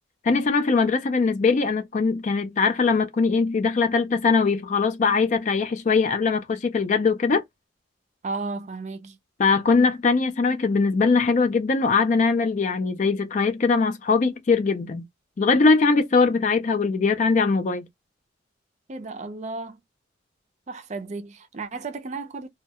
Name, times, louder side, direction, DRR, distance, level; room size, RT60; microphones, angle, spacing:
voice 1, 0.2-7.4 9.4-15.1 15.4-17.9, left 4 dB, 40° left, 0.4 m, -21 dB
voice 2, 8.2-9.2 18.9-19.8 20.7-22.5, right 3 dB, 40° right, 0.4 m, -33 dB
2.2 x 2.1 x 2.7 m
head